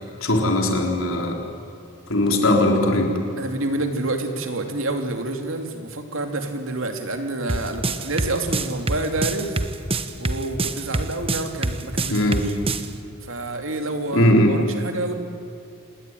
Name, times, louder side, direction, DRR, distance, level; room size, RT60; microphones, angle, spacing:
voice 1, 0.2-1.4 2.1-3.1 12.1-12.4 14.1-14.6, left 1 dB, 70° left, 2 dB, 4.2 m, -19 dB
voice 2, 3.4-9.6 10.2-12.3 13.2-15.2, right 2 dB, 65° right, 5 dB, 2.9 m, -28 dB
sound 1, 7.5-12.9, right 2 dB, 25° right, 1.2 m, -25 dB
27.0 x 20.0 x 9.4 m, 2.6 s
head